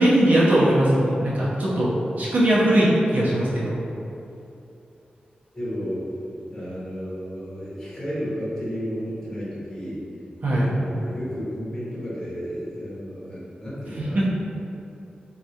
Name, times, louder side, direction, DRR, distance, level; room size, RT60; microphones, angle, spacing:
voice 1, 0.0-1.9 2.2-3.8 10.4-10.7 14.0-14.2, right 1 dB, 55° right, -7 dB, 0.8 m, -20 dB
voice 2, 5.5-6.1 6.5-10.0 10.5-14.2, equal, 10° left, -10 dB, 1.2 m, -32 dB
3.6 x 2.4 x 2.8 m, 2.8 s
wide cardioid pair, 135°, 3 cm